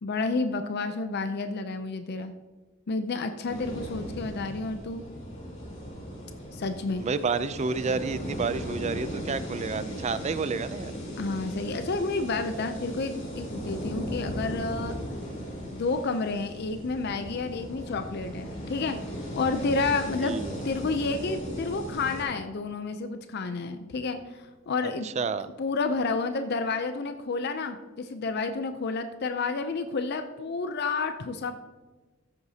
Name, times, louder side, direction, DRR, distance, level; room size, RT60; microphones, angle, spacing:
voice 1, 0.0-2.3 2.9-5.0 6.5-7.1 11.2-15.0 15.7-19.0 19.3-20.4 20.6-25.1 25.6-31.6, left 3 dB, 55° left, 8 dB, 0.5 m, -30 dB
sound 1, 3.5-22.2, equal, 40° left, 2.6 m, -37 dB
voice 2, 7.0-10.9 20.2-20.6 25.0-25.5, right 4 dB, 35° right, 14 dB, 0.4 m, -30 dB
14.0 x 8.0 x 2.8 m, 1.2 s
head